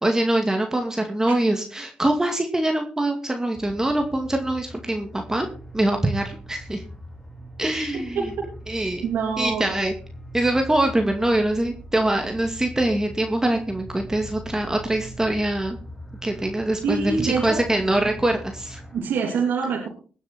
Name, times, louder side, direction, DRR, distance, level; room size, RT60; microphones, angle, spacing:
voice 1, 0.0-5.5 5.7-6.8 7.6-8.3 8.7-9.1 9.4-9.9 10.3-15.8 16.2-18.8, right 1 dB, 15° right, 4 dB, 2.3 m, -23 dB
sound 1, 3.5-19.0, equal, 15° left, 4.2 m, -41 dB
voice 2, 8.1-8.4 9.0-9.8 16.8-17.6 18.9-19.9, right 5 dB, 75° right, -1 dB, 3.1 m, -25 dB
21.5 x 7.2 x 4.3 m, 0.40 s
supercardioid pair, 55°, 3 cm